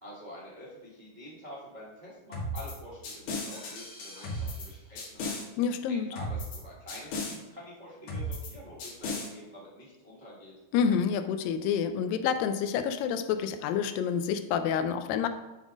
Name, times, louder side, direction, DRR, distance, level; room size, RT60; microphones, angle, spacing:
voice 1, 0.0-5.4 5.9-10.5, equal, 70° right, -7 dB, 0.4 m, -47 dB
sound 1, 2.3-2.8 3.0-4.7 5.0-5.4 6.2-6.6 6.9-7.4 8.1-8.5 8.8-9.3, left 1 dB, 70° left, 3.1 m, -35 dB
voice 2, 5.6-6.1 10.7-15.3, left 7 dB, 85° left, 9 dB, 2.3 m, -28 dB
9.2 x 3.7 x 5.1 m, 1.1 s
omnidirectional pair, 4.0 m